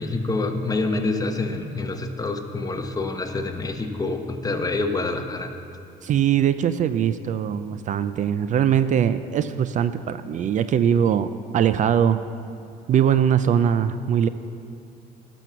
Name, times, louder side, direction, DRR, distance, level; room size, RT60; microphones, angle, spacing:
voice 1, 0.0-5.5, left 3 dB, 20° left, 5 dB, 0.9 m, -27 dB
voice 2, 6.0-12.2 12.9-14.3, right 9 dB, 50° right, 12 dB, 0.4 m, -21 dB
12.0 x 6.2 x 6.8 m, 2.6 s
cardioid pair, 110°, 17 cm